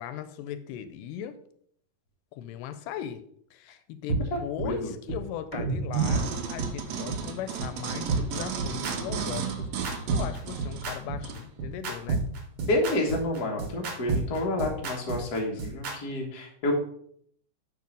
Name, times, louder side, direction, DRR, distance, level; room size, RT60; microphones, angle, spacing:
voice 1, 0.0-1.4 2.3-3.2 3.5-12.2, left 10 dB, 85° left, 11 dB, 2.1 m, -38 dB
sound 1, 4.1-4.2 4.6-4.7 5.1-5.2 5.6-5.7 6.1-6.2 6.6-6.7 7.1-7.2 7.6-7.7 8.1-15.9, right 4 dB, 55° right, 1.7 m, -29 dB
voice 2, 4.3-4.9 12.6-16.7, left 1 dB, 60° left, 0 dB, 0.9 m, -29 dB
sound 2, 5.5-9.0 9.4-11.2 11.5-13.3 13.7-15.5, right 5 dB, 15° right, 0.8 m, -40 dB
sound 3, 5.9-11.4 12.0-12.1, right 6 dB, 80° right, 1.5 m, -35 dB
5.5 x 4.6 x 5.2 m, 0.67 s
omnidirectional pair, 3.8 m